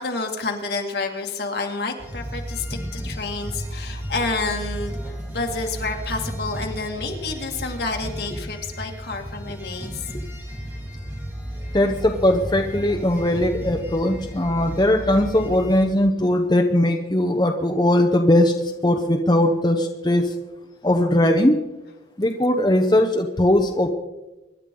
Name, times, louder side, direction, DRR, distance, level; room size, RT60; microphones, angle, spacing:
voice 1, 0.0-10.1, left 3 dB, 65° left, 2 dB, 2.1 m, -29 dB
sound 1, 2.0-15.9, equal, 10° right, 2.2 m, -33 dB
voice 2, 11.7-20.3 20.8-21.6 22.2-23.9, left 1 dB, 25° left, 3 dB, 0.8 m, -19 dB
24.5 x 11.0 x 3.8 m, 1.1 s
head